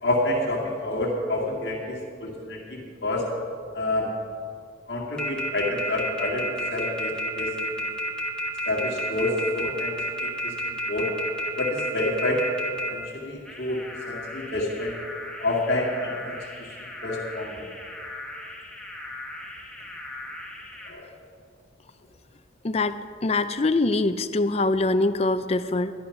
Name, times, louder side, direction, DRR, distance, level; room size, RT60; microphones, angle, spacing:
voice 1, 0.0-3.3 3.7-4.1 4.9-7.8 8.7-9.9 10.2-11.1 11.6-12.5 12.9-14.9 15.4-16.3 16.6-17.7 20.8-21.1, left 1 dB, 55° left, -4 dB, 2.1 m, -28 dB
sound 1, 5.2-12.9 13.5-20.9, equal, 5° left, 1.2 m, -33 dB
voice 2, 22.6-23.0 23.2-25.9, left 2 dB, 30° left, 10 dB, 0.4 m, -23 dB
12.0 x 11.0 x 5.8 m, 2.3 s
head